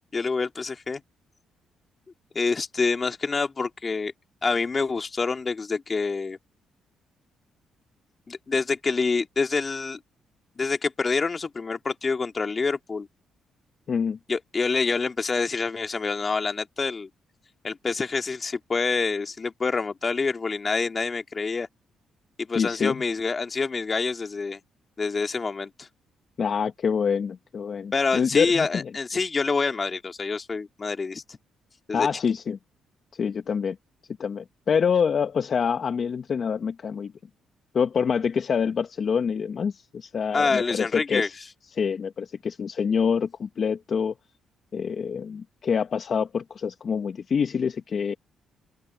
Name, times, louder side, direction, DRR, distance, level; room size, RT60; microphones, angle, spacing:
voice 1, 0.1-1.0 2.3-4.1 4.4-6.4 8.3-10.0 10.6-13.1 14.3-17.1 17.6-21.7 22.4-24.6 25.0-25.9 27.9-31.4 31.9-32.1 40.3-41.3, left 4 dB, 35° left, 2.7 m, -27 dB
voice 2, 13.9-14.2 22.5-22.9 26.4-28.9 31.9-32.6 33.2-33.8 34.2-37.1 37.7-41.3 41.7-44.1 44.7-48.2, left 6 dB, 50° left, 1.5 m, -26 dB
open air
cardioid pair, 90°, 0 cm